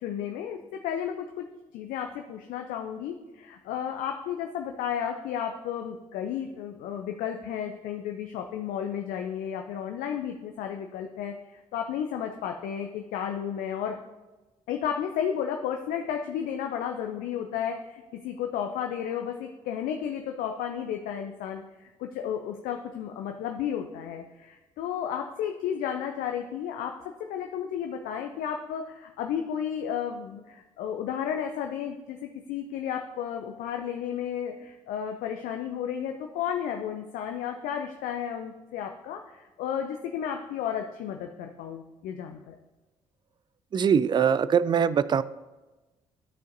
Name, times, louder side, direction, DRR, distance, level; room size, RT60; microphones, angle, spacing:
voice 1, 0.0-1.5 1.7-14.0 14.7-42.5, left 8 dB, 60° left, 4 dB, 0.6 m, -33 dB
voice 2, 43.7-45.2, right 7 dB, 30° right, 16 dB, 0.3 m, -22 dB
12.0 x 6.4 x 2.7 m, 1.1 s
figure-of-eight pair, 45°, 16 cm